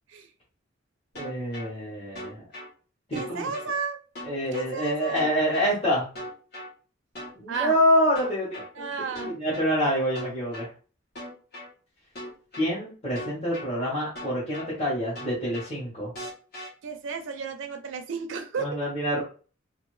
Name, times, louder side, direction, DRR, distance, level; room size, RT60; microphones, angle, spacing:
voice 1, 1.1-2.4 3.1-3.5 4.2-6.1 7.4-10.7 12.6-16.1 18.6-19.2, equal, 30° left, -9 dB, 1.2 m, -26 dB
sound 1, 1.2-1.7 2.2-2.7 3.2-3.7 4.2-4.7 5.2-5.7 6.2-6.7 7.2-7.7 8.2-8.7 9.2-9.7 10.2-10.7 11.2-11.7 12.2-12.7 13.2-13.7 14.2-14.7 15.2-15.7 16.2-16.7, equal, 55° left, 1.3 m, -38 dB
voice 2, 3.1-4.0 4.5-5.2 7.5-7.8 8.7-9.4 16.8-18.7, right 5 dB, 70° right, 5 dB, 0.4 m, -33 dB
2.7 x 2.6 x 3.1 m, 0.38 s
head